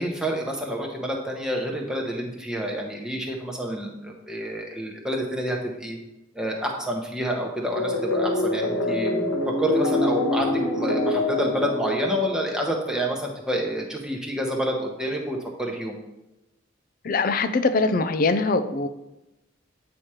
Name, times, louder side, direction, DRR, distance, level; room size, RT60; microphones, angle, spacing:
voice 1, 0.0-6.0 6.3-16.0, equal, 5° right, -1 dB, 0.9 m, -28 dB
sound 1, 7.8-12.9, left 2 dB, 80° left, 1.3 m, -25 dB
voice 2, 17.0-18.9, left 3 dB, 45° left, 11 dB, 0.4 m, -22 dB
8.8 x 3.0 x 4.8 m, 0.98 s
head